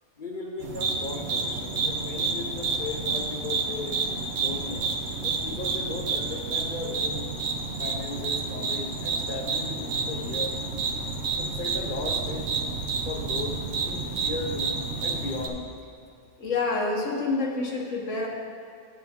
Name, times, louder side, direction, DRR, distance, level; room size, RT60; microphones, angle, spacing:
voice 1, 0.2-4.0 4.3-4.9 5.2-7.3 7.8-10.6 11.3-12.6 13.1-15.7, left 3 dB, 50° left, -1 dB, 0.7 m, -36 dB
sound 1, 0.6-15.5, right 4 dB, 85° right, 1.2 m, -30 dB
voice 2, 16.4-18.3, left 3 dB, 80° left, -2 dB, 1.6 m, -27 dB
10.0 x 8.1 x 3.6 m, 2.3 s
omnidirectional pair, 1.3 m